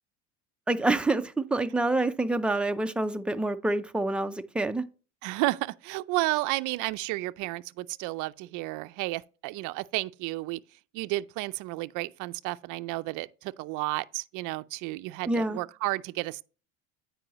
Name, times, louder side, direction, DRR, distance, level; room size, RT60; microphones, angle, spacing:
voice 1, 0.7-4.8 15.3-15.6, right 2 dB, 5° right, 0.5 m, -27 dB
voice 2, 5.2-10.6 10.9-16.4, right 20 dB, 55° right, 0.5 m, -32 dB
9.0 x 4.8 x 2.9 m
supercardioid pair, 95°, 37 cm